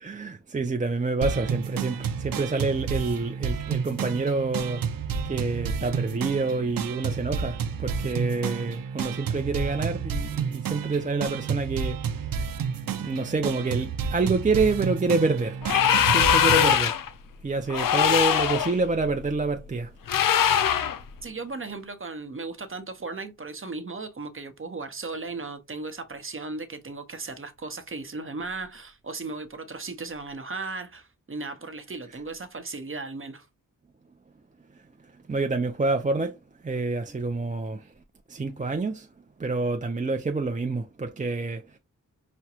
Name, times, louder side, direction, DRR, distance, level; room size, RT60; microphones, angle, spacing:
voice 1, 0.0-12.6 13.0-15.6 16.1-17.0 17.4-19.9 35.0-36.4 36.6-37.9 38.3-39.1 39.4-41.8, right 3 dB, 25° right, 0.5 m, -27 dB
sound 1, 1.2-16.8, right 6 dB, 90° right, 0.5 m, -31 dB
sound 2, 15.6-17.1 17.7-18.7 20.1-21.0, left 9 dB, 80° left, 0.5 m, -21 dB
voice 2, 21.2-33.5, right 3 dB, 40° right, 0.8 m, -36 dB
5.9 x 2.2 x 2.8 m
wide cardioid pair, 70°, 33 cm